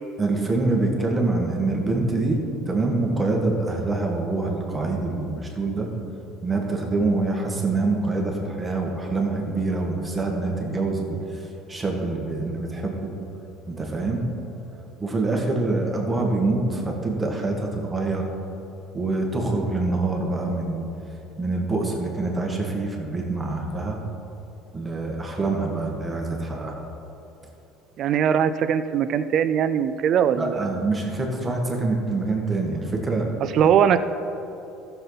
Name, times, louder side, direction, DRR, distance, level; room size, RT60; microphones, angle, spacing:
voice 1, 0.2-2.4 2.7-5.9 6.4-11.4 11.7-13.1 13.7-14.2 15.0-18.3 18.9-20.9 21.4-24.0 24.7-26.8 30.3-33.3, right 3 dB, 15° right, 0 dB, 1.7 m, -25 dB
voice 2, 28.0-30.7 33.5-34.0, right 8 dB, 50° right, 11 dB, 0.4 m, -20 dB
14.5 x 7.0 x 4.0 m, 2.9 s
supercardioid pair, 115°, 0 cm